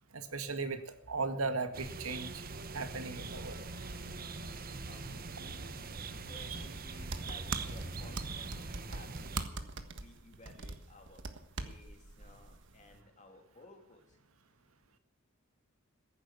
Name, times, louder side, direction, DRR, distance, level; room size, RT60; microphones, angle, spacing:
voice 1, 0.1-0.8 1.1-2.4 2.7-3.6 6.5-6.6, right 3 dB, 90° right, 8 dB, 1.8 m, -37 dB
sound 1, 1.7-9.4, right 3 dB, 45° right, 1.0 m, -43 dB
sound 2, 3.2-9.3, left 1 dB, 75° left, 2.1 m, -59 dB
voice 2, 4.8-5.6 6.3-11.2 11.5-14.2, left 2 dB, 35° left, 3 dB, 2.9 m, -57 dB
sound 3, 7.0-13.0, right 3 dB, 60° right, 1.4 m, -42 dB
14.5 x 11.0 x 8.4 m, 0.83 s
head